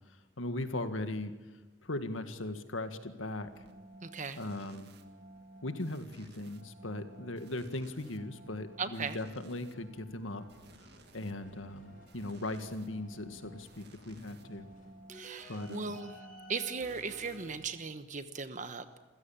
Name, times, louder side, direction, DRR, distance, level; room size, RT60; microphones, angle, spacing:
voice 1, 0.4-1.3 1.8-3.6 4.4-4.9 5.6-10.4 11.1-14.7 15.5-16.0, left 1 dB, 80° left, 9 dB, 1.9 m, -38 dB
sound 1, 3.5-18.1, right 2 dB, 55° right, 2.0 m, -56 dB
voice 2, 4.0-4.4 8.8-9.2 15.1-16.1 16.5-19.0, right 5 dB, 40° right, 10 dB, 1.1 m, -38 dB
sound 2, 10.5-14.9, equal, 40° left, 7.1 m, -62 dB
sound 3, 11.4-13.0 15.1-17.5, equal, 5° left, 5.6 m, -54 dB
27.5 x 16.0 x 8.9 m, 1.2 s
head